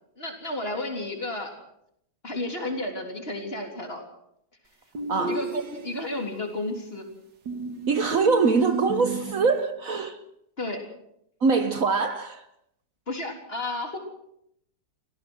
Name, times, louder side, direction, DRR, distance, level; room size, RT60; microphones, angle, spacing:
voice 1, 0.2-1.5 2.2-4.0 5.3-7.1 10.6-10.8 13.1-14.0, left 1 dB, 35° left, 3.8 m, -32 dB
sound 1, 4.9-6.2 7.5-9.7, right 2 dB, 85° right, 2.5 m, -33 dB
voice 2, 5.1-5.4 7.9-10.2 11.4-12.4, right 4 dB, 55° right, 1.5 m, -23 dB
27.5 x 17.5 x 6.3 m
omnidirectional pair, 1.8 m